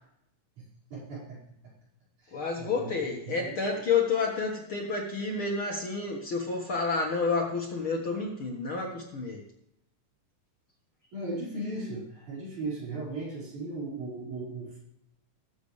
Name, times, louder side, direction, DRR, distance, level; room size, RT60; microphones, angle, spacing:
voice 1, 0.9-1.4 2.2-2.9 3.3-3.5 11.1-14.8, right 2 dB, 65° right, -7 dB, 6.6 m, -37 dB
voice 2, 2.3-9.4, left 4 dB, 50° left, 0 dB, 2.0 m, -30 dB
20.5 x 8.2 x 3.3 m, 0.78 s
omnidirectional pair, 3.7 m